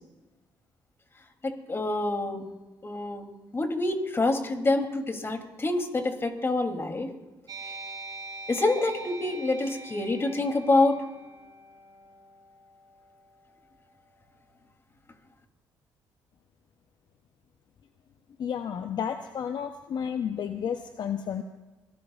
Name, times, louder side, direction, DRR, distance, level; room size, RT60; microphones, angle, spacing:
voice 1, 1.4-2.4 2.8-7.1 8.5-11.0, left 2 dB, 30° left, 4 dB, 3.0 m, -27 dB
sound 1, 7.5-14.5, right 2 dB, 50° right, 2.3 m, -44 dB
voice 2, 18.4-21.4, left 8 dB, 55° left, 7 dB, 0.8 m, -31 dB
25.0 x 18.0 x 2.5 m, 1.1 s
supercardioid pair, 70°, 9 cm